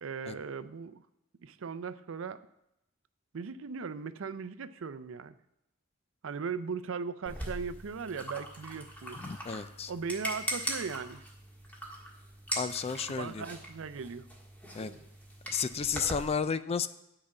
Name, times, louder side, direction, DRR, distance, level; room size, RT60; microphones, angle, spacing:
voice 1, 0.0-1.0 1.4-2.4 3.3-5.3 6.2-9.2 9.9-11.2 13.1-14.3, right 5 dB, 65° right, 13 dB, 0.5 m, -38 dB
sound 1, 7.3-16.3, equal, 10° left, 1.6 m, -41 dB
voice 2, 9.2-9.9 12.6-13.5 14.7-14.9 15.5-16.9, left 6 dB, 30° left, 13 dB, 0.4 m, -32 dB
9.6 x 5.0 x 7.4 m, 0.84 s
head